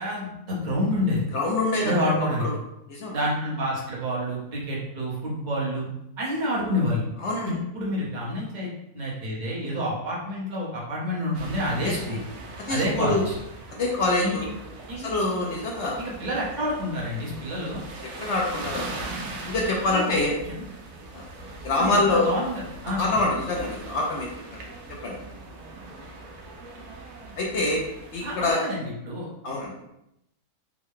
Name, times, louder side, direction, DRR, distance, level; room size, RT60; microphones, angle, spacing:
voice 1, 0.0-1.2 1.8-2.5 3.1-5.9 6.2-7.0 7.4-8.7 8.9-12.2 12.7-13.4 14.2-14.4 14.9-15.1 16.0-17.8 19.9-20.2 21.8-23.2 28.2-29.5, equal, 35° right, -4 dB, 0.9 m, -28 dB
voice 2, 1.3-2.5 2.9-3.2 7.2-7.5 11.8-12.2 12.5-13.2 13.7-14.5 15.0-15.9 18.2-19.0 19.4-20.4 21.1-21.2 21.6-22.3 22.9-24.6 25.0-25.2 27.4-27.9 28.1-28.6 29.4-29.7, left 2 dB, 60° left, -1 dB, 0.7 m, -26 dB
sound 1, 11.3-28.5, right 2 dB, 75° right, 1.1 m, -40 dB
3.5 x 2.1 x 3.6 m, 0.84 s
omnidirectional pair, 1.7 m